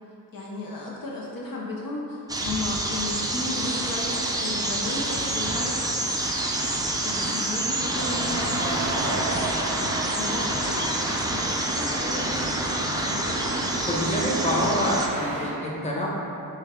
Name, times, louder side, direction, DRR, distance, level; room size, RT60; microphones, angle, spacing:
voice 1, 0.3-6.0 7.0-15.0, left 2 dB, 60° left, -4 dB, 0.7 m, -35 dB
sound 1, 2.3-15.1, right 1 dB, 10° right, 0.4 m, -27 dB
sound 2, 8.0-15.5, right 2 dB, 80° right, 0.7 m, -37 dB
voice 2, 13.7-16.1, equal, 15° left, -4 dB, 1.0 m, -26 dB
6.5 x 2.2 x 3.5 m, 2.8 s
cardioid pair, 70°, 40 cm